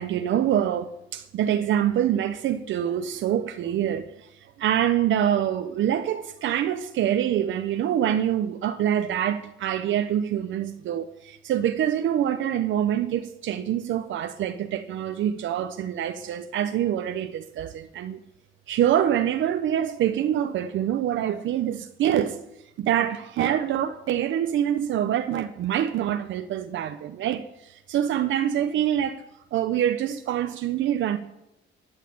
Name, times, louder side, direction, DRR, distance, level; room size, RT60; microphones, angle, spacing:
voice 1, 0.0-4.3 4.6-18.2 18.7-22.4 22.8-29.2 29.5-31.2, right 10 dB, 75° right, 0.8 m, -25 dB
13.5 x 6.5 x 9.3 m
cardioid pair, 90°, 20 cm